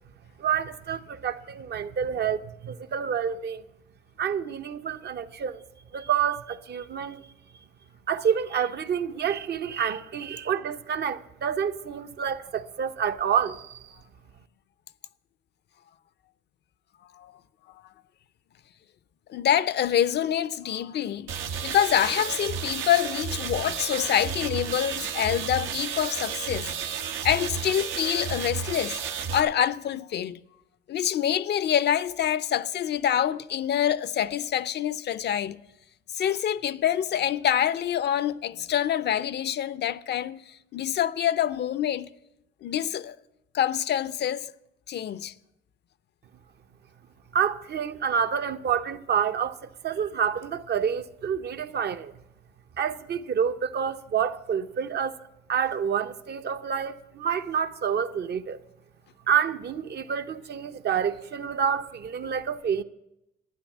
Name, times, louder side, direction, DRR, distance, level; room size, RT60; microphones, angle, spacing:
voice 1, 0.4-3.6 4.2-5.6 5.9-7.2 8.1-13.9 47.3-49.6 49.8-52.1 52.8-55.2 55.5-58.6 59.3-62.8, right 8 dB, 55° right, 0.7 m, -28 dB
voice 2, 19.3-21.3 21.6-26.7 27.2-29.0 29.3-30.4 30.9-35.6 36.1-42.1 42.6-43.2 43.5-44.5 44.9-45.3, left 10 dB, 60° left, 0.5 m, -26 dB
sound 1, 21.3-29.4, right 7 dB, 85° right, 1.0 m, -32 dB
12.0 x 9.4 x 7.2 m
cardioid pair, 90°, 20 cm